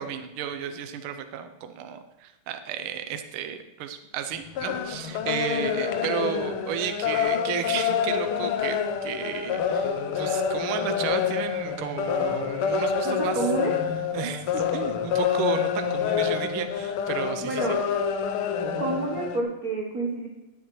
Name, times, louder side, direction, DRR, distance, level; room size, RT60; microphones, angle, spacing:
voice 1, 0.0-13.4 14.1-17.7, right 8 dB, 80° right, 8 dB, 1.5 m, -33 dB
sound 1, 4.3-19.4, left 7 dB, 80° left, 1.6 m, -27 dB
voice 2, 13.0-13.7 17.4-17.8 18.8-20.3, right 2 dB, 50° right, -1 dB, 1.3 m, -28 dB
18.5 x 7.2 x 3.1 m, 1.0 s
omnidirectional pair, 2.4 m